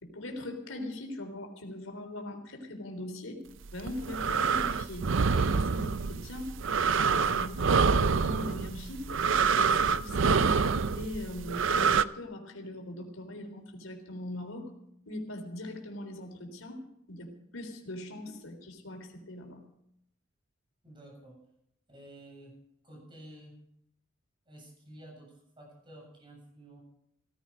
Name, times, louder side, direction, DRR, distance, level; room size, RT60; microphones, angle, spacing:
voice 1, 0.0-3.4 3.7-5.1 5.4-6.5 7.0-9.1 9.6-14.7 15.1-16.8 17.1-19.6, left 1 dB, 80° left, 4 dB, 3.7 m, -40 dB
sound 1, 3.7-12.0, right 5 dB, 65° right, 0.5 m, -26 dB
voice 2, 20.8-21.4 21.9-22.6 22.8-23.6 24.5-26.8, right 1 dB, 25° right, -1 dB, 7.8 m, -51 dB
17.5 x 14.5 x 5.2 m, 0.74 s
head